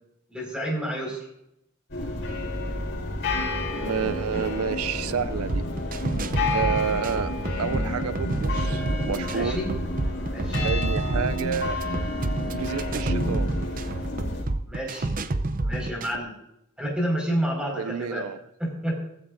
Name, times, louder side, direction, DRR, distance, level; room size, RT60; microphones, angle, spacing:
voice 1, 0.3-1.3 9.3-9.7 10.3-10.7 14.7-15.1 15.6-16.3 16.8-18.3 18.6-19.0, equal, 5° right, -1 dB, 5.1 m, -29 dB
sound 1, 1.9-14.4, left 2 dB, 55° left, 5.1 m, -30 dB
voice 2, 3.8-5.7 6.5-7.3 7.6-9.6 10.6-11.8 12.5-13.5 17.8-18.4, right 7 dB, 80° right, 15 dB, 0.5 m, -29 dB
sound 2, 5.3-16.2, right 2 dB, 40° right, 0.6 m, -29 dB
17.5 x 15.5 x 2.6 m, 0.79 s
head